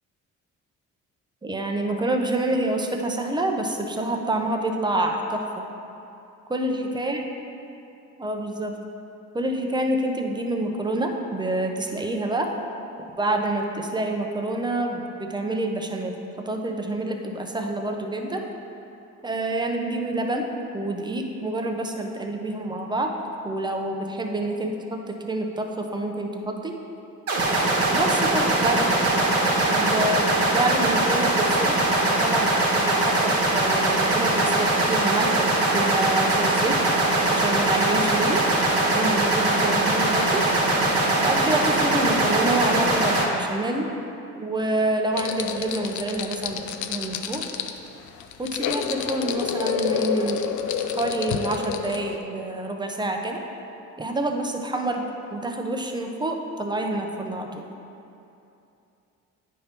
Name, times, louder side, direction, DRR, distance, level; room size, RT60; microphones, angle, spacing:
voice 1, 1.4-5.6 6.5-7.2 8.2-8.7 9.3-12.5 13.2-16.2 16.5-18.4 19.2-20.5 20.7-23.1 23.4-26.7 27.9-28.9 29.4-31.8 32.1-32.5 32.7-36.8 37.3-38.4 38.8-40.4 41.2-43.9 44.4-46.6 46.9-47.5 48.4-50.4 51.0-53.4 54.0-57.6, right 2 dB, 15° right, 3 dB, 0.7 m, -27 dB
sound 1, 27.3-43.2, right 2 dB, 55° right, 1.2 m, -21 dB
sound 2, 45.1-52.2, left 8 dB, 75° left, 0.5 m, -29 dB
9.4 x 5.2 x 2.9 m, 2.8 s
cardioid pair, 90°, 30 cm